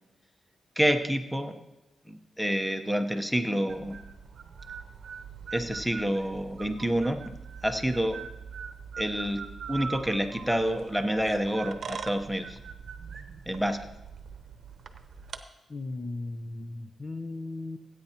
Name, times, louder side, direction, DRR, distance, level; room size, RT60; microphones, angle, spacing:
voice 1, 0.8-1.5 2.1-4.0 5.5-7.2 7.6-8.2 9.0-9.4 9.7-12.6 13.5-13.8, equal, ahead, 7 dB, 0.9 m, -28 dB
sound 1, 3.7-15.4, right 6 dB, 65° right, 0.8 m, -42 dB
voice 2, 15.7-17.8, left 2 dB, 35° left, 8 dB, 0.7 m, -36 dB
17.0 x 9.1 x 2.9 m, 0.96 s
cardioid pair, 80°, 0 cm